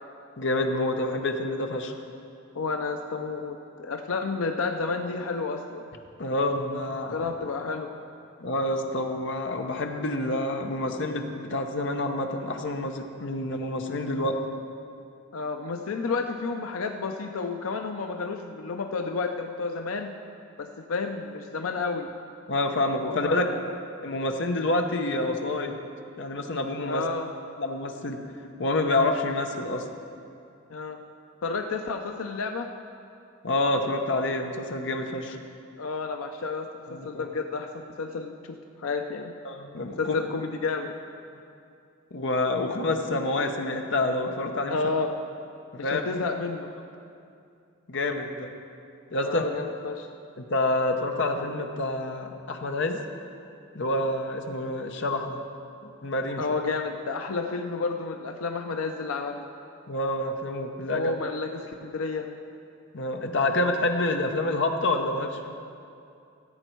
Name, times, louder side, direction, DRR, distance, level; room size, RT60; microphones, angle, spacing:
voice 1, 0.4-1.9 6.2-7.2 8.4-14.4 22.5-23.5 24.0-25.7 26.2-27.0 27.6-28.2 28.6-29.8 33.4-35.4 36.9-37.3 39.4-40.2 42.1-44.8 45.7-46.0 47.9-48.5 49.1-49.4 50.4-53.0 53.7-55.4 56.0-56.4 59.9-61.1 62.9-65.5, left 2 dB, 60° left, 4 dB, 0.8 m, -27 dB
voice 2, 2.5-5.8 7.1-7.9 15.3-20.1 20.6-22.1 23.0-23.6 26.9-27.3 30.7-31.0 31.4-32.7 35.8-39.3 40.0-40.9 44.7-45.2 45.8-46.7 49.2-50.1 56.4-59.5 60.9-62.3, left 4 dB, 90° left, 5 dB, 0.5 m, -31 dB
15.0 x 8.0 x 4.5 m, 2.5 s
head